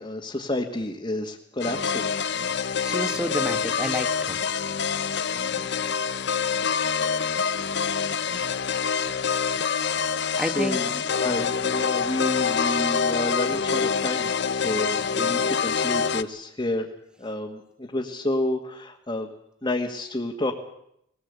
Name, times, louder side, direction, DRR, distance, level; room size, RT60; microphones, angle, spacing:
voice 1, 0.0-2.1 10.3-16.9 17.2-19.3 19.6-20.5, left 1 dB, 25° left, -1 dB, 1.7 m, -30 dB
sound 1, 1.6-16.2, left 6 dB, 65° left, 0.8 m, -26 dB
voice 2, 2.8-4.4 5.5-5.6 10.4-10.8 15.2-15.3, equal, 5° right, 7 dB, 1.5 m, -30 dB
20.5 x 18.0 x 8.2 m, 0.77 s
head